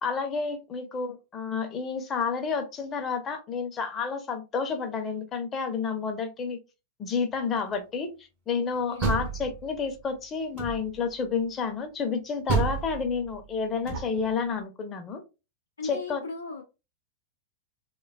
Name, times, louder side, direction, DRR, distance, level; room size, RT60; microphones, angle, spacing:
voice 1, 0.0-6.6 7.0-15.2 15.8-16.2, left 5 dB, 25° left, 0.6 m, -30 dB
Door, 8.7-10.0 10.5-11.1 12.5-14.4, right 4 dB, 45° right, 0.5 m, -31 dB
voice 2, 15.8-16.6, left 4 dB, 75° left, 0.4 m, -37 dB
3.2 x 2.2 x 2.3 m
figure-of-eight pair, 90°, 0 cm